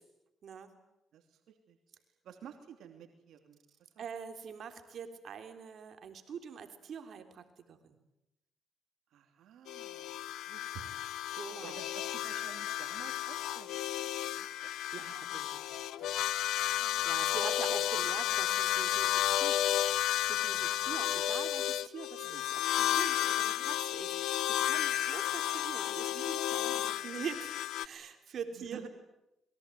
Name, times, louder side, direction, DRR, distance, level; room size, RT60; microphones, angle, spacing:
voice 1, 1.1-1.8 2.2-4.1 9.1-11.1 11.6-13.7 14.0-14.7 16.7-17.1 17.8-17.9 23.5-23.7 28.5-28.9, right 9 dB, 75° right, 5 dB, 3.0 m, -52 dB
voice 2, 4.0-8.0 11.3-11.8 14.9-16.4 17.0-19.6 19.8-27.5 27.8-28.9, right 7 dB, 60° right, 7 dB, 3.6 m, -44 dB
sound 1, 9.7-27.9, left 13 dB, 85° left, 1.0 m, -32 dB
28.0 x 22.5 x 9.3 m, 0.88 s
cardioid pair, 90°, 0 cm